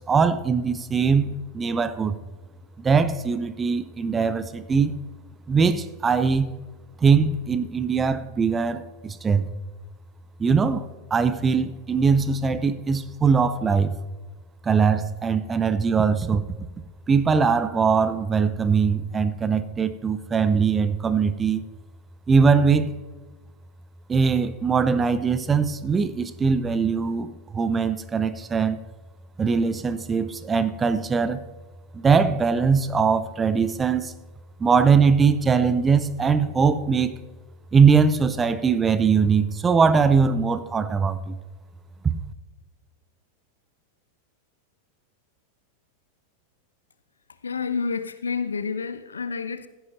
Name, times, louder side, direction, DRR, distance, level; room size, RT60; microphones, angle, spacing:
voice 1, 0.0-2.2 2.8-4.9 5.5-6.5 7.0-9.5 10.4-10.8 11.1-14.0 14.6-16.4 17.1-21.6 22.3-22.9 24.1-28.8 29.4-31.4 31.9-34.1 34.6-37.1 37.7-41.3, right 5 dB, 20° right, 0.6 m, -21 dB
voice 2, 47.4-49.7, left 5 dB, 75° left, 0.6 m, -29 dB
15.5 x 10.5 x 2.7 m
figure-of-eight pair, 90°, 0 cm